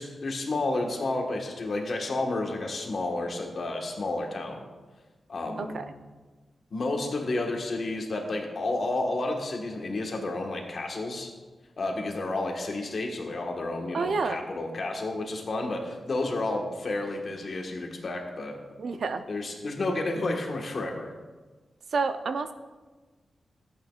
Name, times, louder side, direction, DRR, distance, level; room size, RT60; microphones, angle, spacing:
voice 1, 0.0-4.6 5.3-5.8 6.7-11.3 11.8-18.6 19.3-21.1, left 2 dB, 50° left, 1 dB, 1.4 m, -31 dB
voice 2, 13.9-14.4 18.8-19.2 21.9-22.5, right 4 dB, 65° right, 9 dB, 0.5 m, -29 dB
14.0 x 8.5 x 2.4 m, 1.3 s
wide cardioid pair, 135°, 0 cm